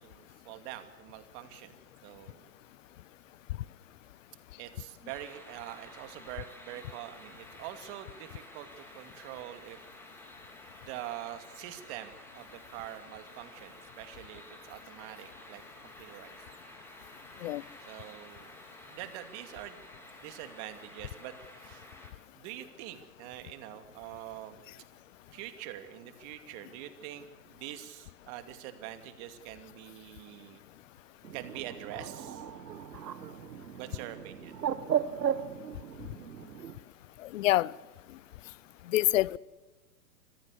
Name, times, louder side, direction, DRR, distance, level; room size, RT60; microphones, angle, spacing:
voice 1, 0.0-1.7 2.0-2.5 4.6-9.8 10.9-16.4 17.8-18.5 18.9-19.8 20.2-21.9 22.3-24.6 25.3-30.6 31.3-32.5 33.7-34.7, right 13 dB, 40° right, 2.6 m, -45 dB
sound 1, 5.1-22.1, left 1 dB, 5° left, 3.9 m, -52 dB
Bird, 31.2-36.8, right 9 dB, 80° right, 1.6 m, -36 dB
voice 2, 37.3-37.7 38.9-39.4, left 15 dB, 50° left, 0.7 m, -25 dB
26.0 x 15.0 x 8.4 m
hypercardioid pair, 120°, 49 cm